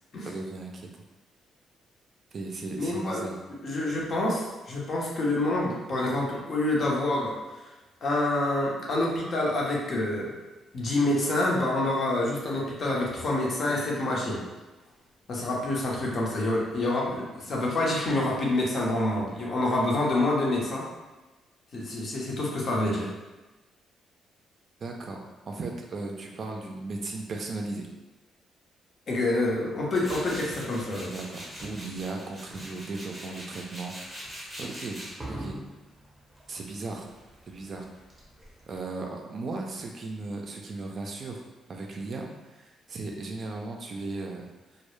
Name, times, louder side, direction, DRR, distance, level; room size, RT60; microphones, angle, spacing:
voice 1, 0.2-0.9 2.3-3.4 24.8-27.9 31.1-35.6 36.5-37.1 37.5-37.9 38.7-41.4 41.7-44.5, right 3 dB, 50° right, 1 dB, 0.3 m, -36 dB
voice 2, 2.8-3.2 3.6-7.3 8.0-10.3 10.7-14.4 15.3-20.8 21.7-23.1 29.1-31.1, left 2 dB, 50° left, -3 dB, 0.7 m, -27 dB
Tools, 29.9-38.8, equal, 10° right, 0.7 m, -42 dB
2.0 x 2.0 x 3.0 m, 1.2 s
cardioid pair, 90°, 0 cm